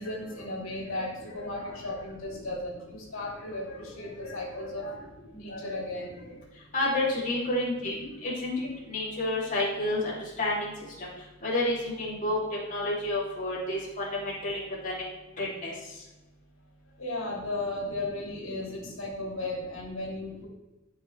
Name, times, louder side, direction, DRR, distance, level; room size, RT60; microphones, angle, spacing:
voice 1, 0.0-5.0 5.3-6.4 17.0-20.5, left 2 dB, 85° left, -3 dB, 3.0 m, -35 dB
voice 2, 6.7-10.7 11.4-12.4 12.7-15.0 15.4-15.7, left 1 dB, 40° left, -6 dB, 2.9 m, -30 dB
13.0 x 6.0 x 3.3 m, 1.1 s
head